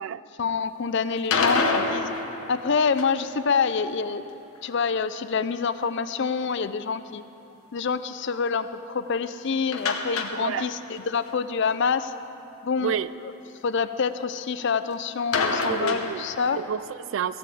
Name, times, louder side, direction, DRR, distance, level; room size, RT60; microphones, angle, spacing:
voice 1, 0.4-2.1 2.5-4.2 4.6-7.2 7.7-12.1 12.6-13.0 13.2-13.3 13.6-16.6, left 5 dB, 55° left, 13 dB, 0.5 m, -26 dB
sound 1, 1.2-3.3 9.7-11.0 11.3-11.4 11.7-11.8 15.3-16.7, left 3 dB, 80° left, 1.1 m, -27 dB
voice 2, 15.6-16.2 16.6-17.4, right 8 dB, 65° right, 16 dB, 0.3 m, -29 dB
15.5 x 8.2 x 7.7 m, 3.0 s
head